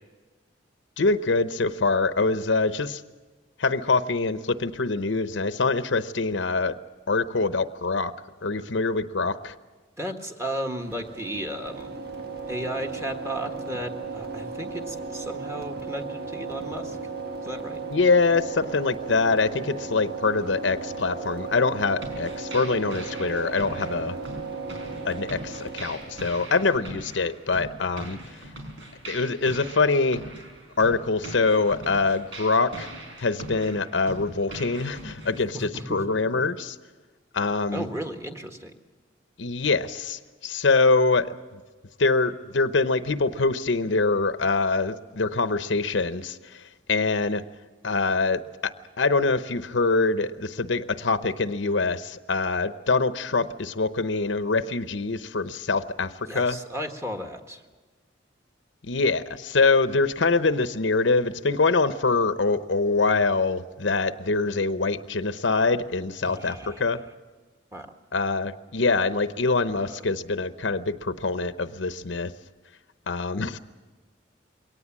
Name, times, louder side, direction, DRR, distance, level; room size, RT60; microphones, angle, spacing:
voice 1, 1.0-3.0 3.6-6.7 7.1-8.1 8.4-9.5 17.9-24.1 25.0-28.2 29.1-30.2 30.8-32.9 33.2-36.8 37.3-37.9 39.4-41.3 42.0-46.6 46.9-47.4 47.8-48.7 49.0-56.6 58.8-67.0 68.1-72.3 73.1-73.6, left 3 dB, 80° left, 12 dB, 0.9 m, -24 dB
voice 2, 10.0-11.9 12.5-17.0 17.4-17.8 35.5-36.4 37.7-38.7 56.3-57.6 66.2-66.9 67.7-67.9 69.8-69.9, right 1 dB, 15° right, 4 dB, 1.6 m, -34 dB
sound 1, 10.8-26.8, right 4 dB, 60° right, 1.7 m, -36 dB
sound 2, 22.0-35.4, right 1 dB, 90° right, 5.3 m, -41 dB
22.5 x 18.0 x 7.4 m, 1.3 s
head